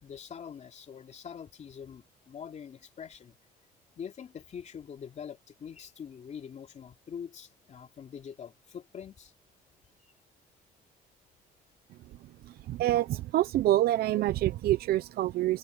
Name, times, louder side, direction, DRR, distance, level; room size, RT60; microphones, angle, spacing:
voice 1, 0.0-3.4 4.0-9.3 10.0-10.1, left 7 dB, 45° left, 2.9 m, -44 dB
voice 2, 12.4-15.6, right 14 dB, 65° right, 0.7 m, -27 dB
open air
cardioid pair, 110°, 17 cm